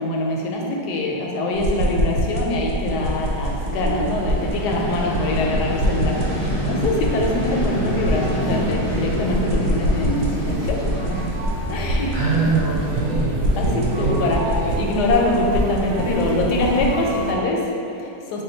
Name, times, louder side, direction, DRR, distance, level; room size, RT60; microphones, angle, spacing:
voice 1, 0.0-11.3 11.7-12.1 13.6-18.4, left 2 dB, 75° left, -1 dB, 1.1 m, -24 dB
sound 1, 1.5-16.9, equal, 90° right, 1.3 m, -25 dB
sound 2, 2.9-17.3, right 1 dB, 75° right, 0.7 m, -34 dB
Vehicle, 4.0-12.9, left 1 dB, 45° left, 0.4 m, -29 dB
voice 2, 12.1-14.3 14.6-14.8, right 3 dB, 55° right, -8 dB, 1.2 m, -23 dB
4.8 x 2.2 x 3.9 m, 2.7 s
omnidirectional pair, 1.9 m